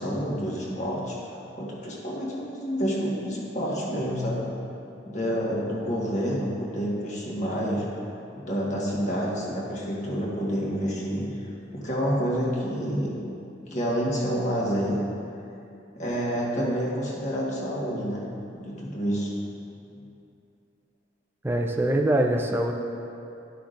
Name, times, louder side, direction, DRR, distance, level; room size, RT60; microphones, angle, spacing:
voice 1, 0.0-4.5 5.0-7.9 8.4-13.2 13.7-15.0 15.9-18.3 18.6-19.3, equal, 40° left, -5 dB, 1.4 m, -28 dB
voice 2, 21.4-22.7, right 1 dB, 10° right, 2 dB, 0.4 m, -23 dB
11.5 x 5.8 x 2.6 m, 2.7 s
head